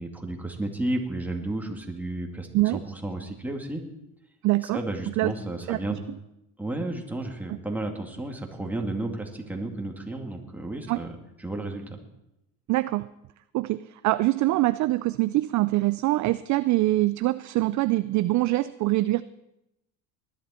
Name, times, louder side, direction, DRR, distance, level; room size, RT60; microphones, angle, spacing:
voice 1, 0.0-3.8 4.7-6.0 6.6-11.9, right 2 dB, 5° right, 2 dB, 2.3 m, -32 dB
voice 2, 4.4-4.8 5.1-5.3 5.7-6.0 7.5-7.6 10.9-11.0 12.7-13.1 13.5-19.2, right 18 dB, 45° right, 15 dB, 0.4 m, -24 dB
19.5 x 11.5 x 4.3 m, 0.88 s
supercardioid pair, 105°, 43 cm